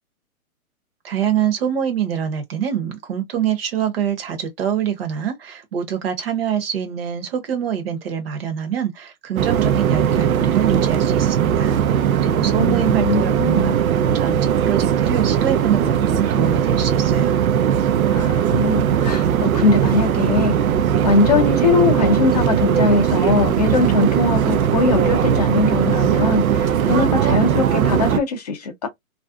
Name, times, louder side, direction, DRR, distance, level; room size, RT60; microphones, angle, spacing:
voice 1, 1.0-14.4 14.7-17.4, right 9 dB, 45° right, 0.9 m, -25 dB
sound 1, 9.4-28.2, right 9 dB, 75° right, 0.6 m, -19 dB
voice 2, 12.6-13.7 18.1-20.6 21.0-28.9, left 3 dB, 30° left, 0.5 m, -20 dB
2.5 x 2.2 x 2.4 m
hypercardioid pair, 160°, 43 cm